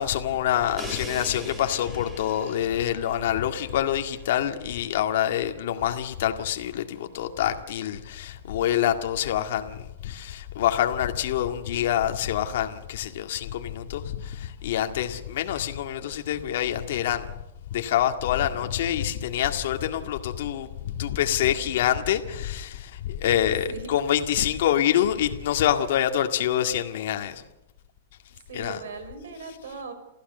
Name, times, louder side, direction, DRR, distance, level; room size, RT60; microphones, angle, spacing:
voice 1, 0.0-17.3 17.7-27.4 28.5-28.8, left 11 dB, 60° left, 1.9 m, -26 dB
Crash cymbal, 0.8-4.6, right 1 dB, 10° right, 3.9 m, -42 dB
voice 2, 28.5-29.9, right 4 dB, 85° right, 5.7 m, -38 dB
29.5 x 15.0 x 6.8 m
supercardioid pair, 160°, 0 cm